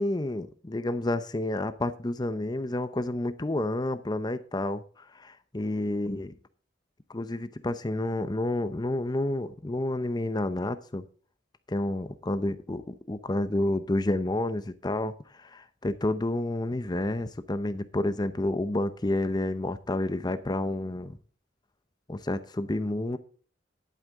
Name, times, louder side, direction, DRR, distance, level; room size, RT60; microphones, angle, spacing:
voice 1, 0.0-6.3 7.1-11.0 11.7-21.2 22.1-23.2, left 1 dB, 25° left, 12 dB, 0.7 m, -30 dB
11.0 x 9.1 x 3.6 m, 0.41 s
head